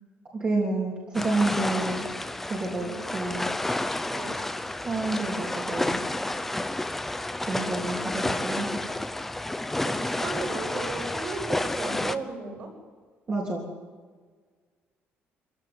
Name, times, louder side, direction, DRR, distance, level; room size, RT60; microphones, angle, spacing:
voice 1, 0.3-2.0 2.4-3.5 4.8-6.0 7.5-8.9 13.3-13.6, right 2 dB, 25° right, -3 dB, 3.4 m, -29 dB
sound 1, 1.1-12.2, left 1 dB, 5° left, 0.8 m, -30 dB
voice 2, 9.8-12.7, right 3 dB, 45° right, 1 dB, 6.3 m, -35 dB
25.0 x 16.0 x 9.7 m, 1.5 s
cardioid pair, 180°, 4 cm